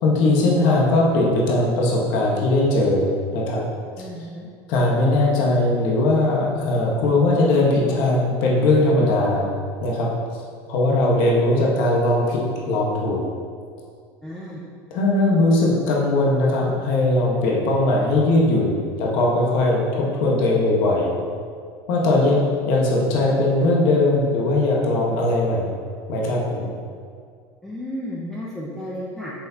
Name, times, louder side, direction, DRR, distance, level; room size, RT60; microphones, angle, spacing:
voice 1, 0.0-3.7 4.7-9.5 9.8-10.1 10.7-13.2 14.9-21.1 21.9-22.4 22.7-25.7 26.1-26.7, left 2 dB, 55° left, -3 dB, 1.4 m, -19 dB
voice 2, 4.0-4.5 14.2-14.6 27.6-29.3, left 1 dB, 5° left, -6 dB, 0.7 m, -33 dB
7.5 x 7.0 x 2.9 m, 2.1 s
cardioid pair, 165°, 9 cm